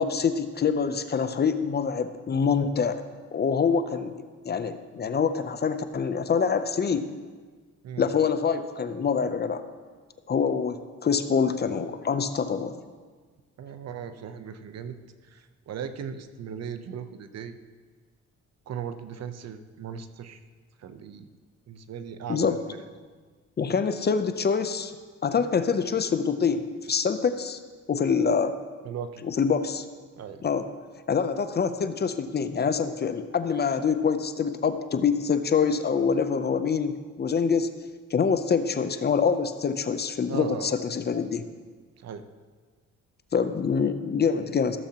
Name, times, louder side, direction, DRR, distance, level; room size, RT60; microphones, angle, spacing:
voice 1, 0.0-3.0 3.3-7.1 8.0-9.6 10.3-12.8 22.3-22.6 23.6-24.9 25.2-27.6 27.9-28.6 29.2-29.8 30.4-30.7 31.1-37.7 38.1-41.4 43.3-44.8, left 6 dB, 35° left, 10 dB, 0.6 m, -25 dB
voice 2, 13.6-15.0 15.2-17.6 18.7-20.4 20.8-21.3 21.7-22.6 28.8-29.2 30.2-30.4 40.3-40.8 42.0-42.3, right 7 dB, 60° right, 10 dB, 0.7 m, -37 dB
15.0 x 7.1 x 2.9 m, 1.5 s
cardioid pair, 90°, 30 cm